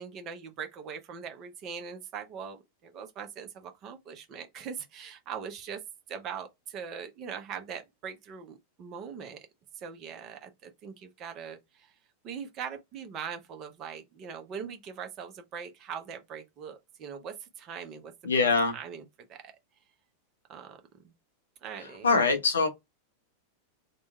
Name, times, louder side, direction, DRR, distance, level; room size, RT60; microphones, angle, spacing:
voice 1, 0.0-5.8 6.1-9.4 9.8-11.9 12.2-18.1 18.7-19.4 20.5-20.8 21.0-21.1 21.6-22.3, right 7 dB, 35° right, 0.7 m, -41 dB
voice 2, 18.2-18.7 22.0-22.7, left 4 dB, 70° left, 0.8 m, -23 dB
3.0 x 2.2 x 3.1 m
figure-of-eight pair, 90°, 0 cm